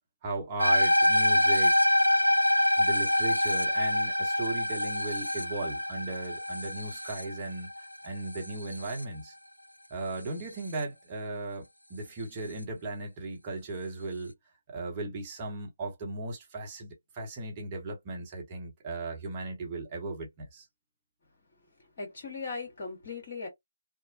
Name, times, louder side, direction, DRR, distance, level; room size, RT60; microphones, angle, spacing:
voice 1, 0.2-1.8 2.8-7.7 8.0-9.3 9.9-11.6 11.9-14.3 14.7-20.7, right 2 dB, 20° right, 0.9 m, -37 dB
sound 1, 0.6-9.0, left 1 dB, 85° left, 0.3 m, -25 dB
voice 2, 21.5-23.5, left 4 dB, 40° left, 1.5 m, -39 dB
2.9 x 2.1 x 2.7 m
figure-of-eight pair, 145°, 0 cm